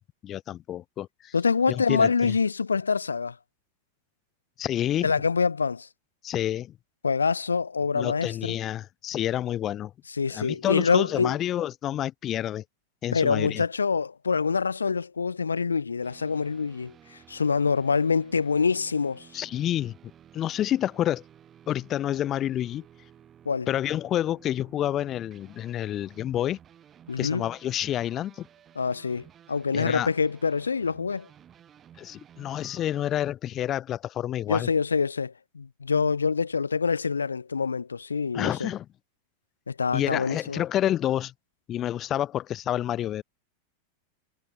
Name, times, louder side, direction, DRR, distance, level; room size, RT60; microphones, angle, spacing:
voice 1, 0.0-1.3 1.7-2.3 4.6-5.1 6.2-6.7 7.9-9.9 10.3-12.6 13.0-13.6 19.3-19.9 20.3-21.2 21.7-22.8 23.7-26.6 27.2-28.5 29.7-30.1 32.0-34.7 38.3-38.9 39.9-41.3 41.7-43.2, left 12 dB, 30° left, 0.9 m, -29 dB
voice 2, 1.3-3.3 5.0-5.9 7.0-8.6 10.2-11.4 13.1-19.3 23.4-23.7 27.1-27.5 28.8-31.3 34.5-38.7 39.7-40.6, left 5 dB, 75° left, 1.0 m, -25 dB
sound 1, 16.0-33.3, right 9 dB, 25° right, 7.3 m, -54 dB
figure-of-eight pair, 90°, 0 cm